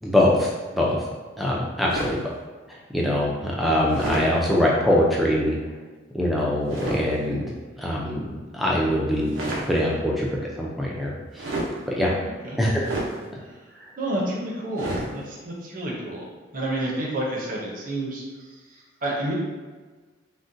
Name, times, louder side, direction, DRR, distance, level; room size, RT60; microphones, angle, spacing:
voice 1, 0.0-1.0 1.4-2.2 2.7-5.6 6.1-7.4 7.8-8.3 8.5-9.3 9.7-10.3 10.6-11.5 11.9-12.1 12.6-12.8, left 1 dB, ahead, -4 dB, 0.4 m, -23 dB
sound 1, 1.9-2.3 3.9-4.3 6.7-7.0 9.2-9.7 11.4-11.8 12.8-13.1 14.8-15.1, right 1 dB, 90° right, 0.6 m, -29 dB
voice 2, 12.2-12.6 13.4-16.3 16.5-19.3, right 1 dB, 45° right, -3 dB, 0.6 m, -30 dB
3.7 x 2.1 x 2.6 m, 1.4 s
head